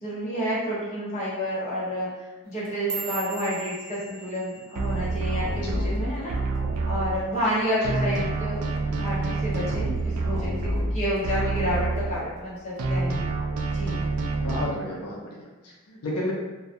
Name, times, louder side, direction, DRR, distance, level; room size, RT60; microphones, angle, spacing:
voice 1, 0.0-6.3 6.9-13.2 13.7-14.0, equal, 30° left, -9 dB, 0.8 m, -30 dB
sound 1, 2.5-6.9 7.2-7.6 8.0-8.4 8.8-9.0 9.6-10.0 10.4-11.2 11.6-12.0 12.8-12.9, right 4 dB, 70° right, 0.8 m, -40 dB
sound 2, 4.8-7.5 7.8-12.5 12.8-14.6, right 2 dB, 90° right, 0.4 m, -27 dB
voice 2, 5.6-5.9 14.4-16.3, left 1 dB, 85° left, -3 dB, 0.5 m, -32 dB
2.2 x 2.1 x 2.7 m, 1.2 s
head